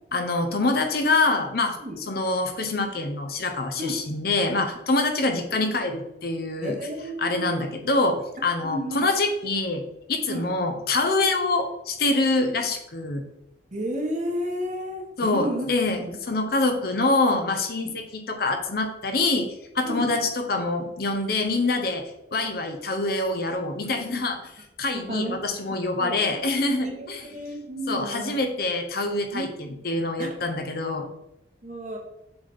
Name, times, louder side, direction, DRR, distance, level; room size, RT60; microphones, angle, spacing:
voice 1, 0.1-1.8 2.1-6.8 7.2-9.8 10.1-13.2 15.2-16.0 16.3-19.5 19.7-22.0 22.3-24.5 24.8-27.2 27.9-31.1, left 2 dB, 55° left, 5 dB, 0.7 m, -25 dB
voice 2, 6.6-7.7 8.6-9.1 10.3-10.5 13.7-15.7 16.0-16.2 17.8-17.9 19.8-20.1 24.9-25.4 26.0-26.1 26.8-28.3 29.3-29.5 30.2-30.3 31.6-32.0, equal, 40° right, 1 dB, 1.0 m, -32 dB
6.9 x 3.9 x 3.5 m, 0.85 s
head